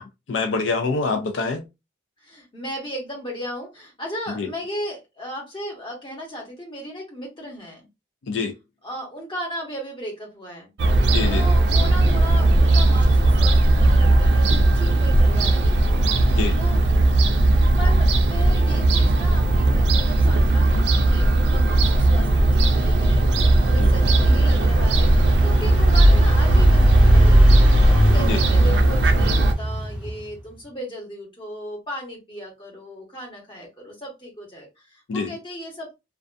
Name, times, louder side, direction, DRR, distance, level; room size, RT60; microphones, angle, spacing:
voice 1, 0.3-1.6 4.4-4.5 8.2-8.5 11.1-11.4 16.3-16.6 23.8-23.9 28.2-28.4 35.1-35.3, left 4 dB, 85° left, 0.4 m, -25 dB
voice 2, 2.2-7.9 8.8-10.7 11.3-15.8 16.5-16.8 17.8-36.0, equal, 25° left, 1.0 m, -36 dB
Fowl / Gull seagull, 10.8-29.5, right 1 dB, 65° right, 0.4 m, -17 dB
Engine, 22.5-30.4, equal, 5° right, 0.5 m, -26 dB
2.4 x 2.2 x 2.5 m
head